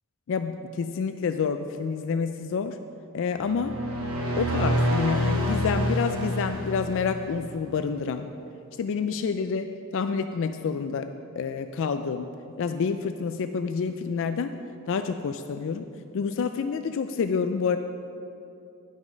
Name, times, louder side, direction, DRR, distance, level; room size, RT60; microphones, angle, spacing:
voice 1, 0.3-2.8 3.1-3.7 4.4-8.3 8.8-9.7 9.9-11.1 11.4-12.3 12.6-14.5 14.9-15.8 16.1-17.8, left 5 dB, 60° left, 9 dB, 0.3 m, -28 dB
sound 1, 3.4-7.3, equal, 65° right, 1.3 m, -27 dB
10.5 x 6.4 x 5.2 m, 2.7 s
head